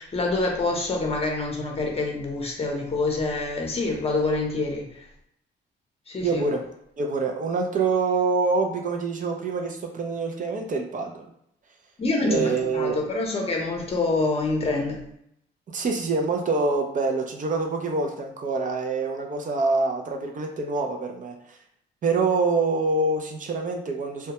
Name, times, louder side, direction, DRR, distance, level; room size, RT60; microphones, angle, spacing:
voice 1, 0.0-5.1 6.1-6.5 12.0-15.0, left 3 dB, 30° left, 0 dB, 0.7 m, -26 dB
voice 2, 6.2-6.6 7.0-11.3 12.2-13.0 15.7-21.6 22.0-24.3, right 3 dB, 40° right, 2 dB, 0.4 m, -25 dB
2.2 x 2.1 x 2.8 m, 0.74 s
cardioid pair, 90°, 20 cm